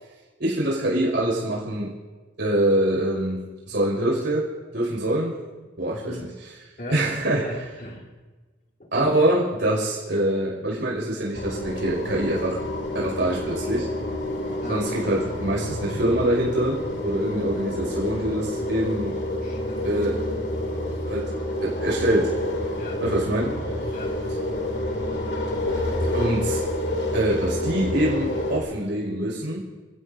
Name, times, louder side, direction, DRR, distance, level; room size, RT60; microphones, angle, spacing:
voice 1, 0.4-1.9 2.4-5.3 5.8-6.2 6.9-7.5 8.9-12.6 12.9-13.9 14.7-19.2 19.8-20.2 21.1-21.3 21.6-22.3 23.0-23.6 23.8-23.9 26.1-26.6 27.1-29.7, right 1 dB, 70° right, -4 dB, 5.5 m, -24 dB
voice 2, 5.9-6.3 6.8-8.1 8.8-9.1 14.6-14.9 19.4-19.9 22.8-23.0 23.9-24.2, left 1 dB, 45° left, 0 dB, 2.5 m, -38 dB
sound 1, 11.3-28.6, left 1 dB, 60° left, 2.5 m, -28 dB
29.0 x 16.0 x 2.7 m, 1.3 s
head